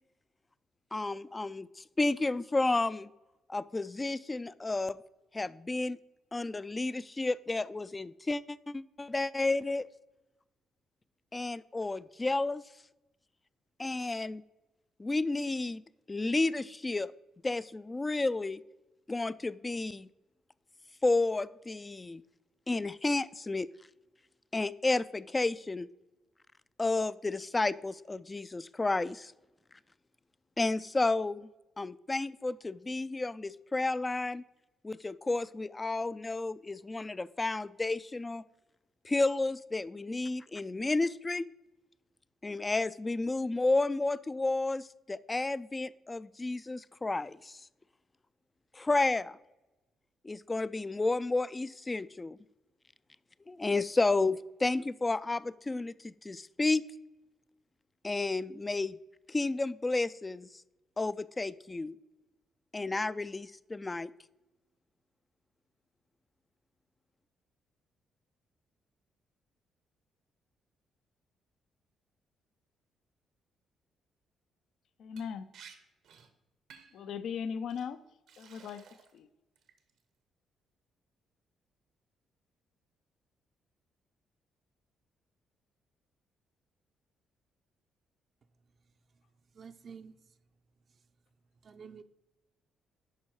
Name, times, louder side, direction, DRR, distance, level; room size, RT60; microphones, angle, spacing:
voice 1, 0.9-3.1 3.5-5.0 5.3-6.0 6.3-9.9 11.3-12.6 13.8-14.4 15.0-15.8 16.1-17.1 17.4-18.6 19.1-20.1 21.0-22.2 22.7-23.7 24.5-25.9 26.8-29.3 30.6-31.5 31.8-34.4 34.8-38.4 39.0-41.5 42.4-47.6 48.7-49.4 50.2-52.4 53.5-56.8 58.0-59.0 59.3-60.5 61.0-62.0 62.7-64.1, left 2 dB, 20° left, 0.3 m, -31 dB
voice 2, 75.0-75.5 76.9-78.0 78.4-78.8 79.1-79.3, left 7 dB, 70° left, 0.5 m, -38 dB
Liquid, 75.2-75.3 75.5-75.8 76.0-76.3 76.7-77.0 77.7-77.9 78.3-79.2 79.6-80.0, right 7 dB, 80° right, 1.1 m, -54 dB
voice 3, 89.5-90.2 91.6-92.0, right 6 dB, 50° right, 0.5 m, -49 dB
11.0 x 4.5 x 4.8 m
cardioid pair, 90°, 0 cm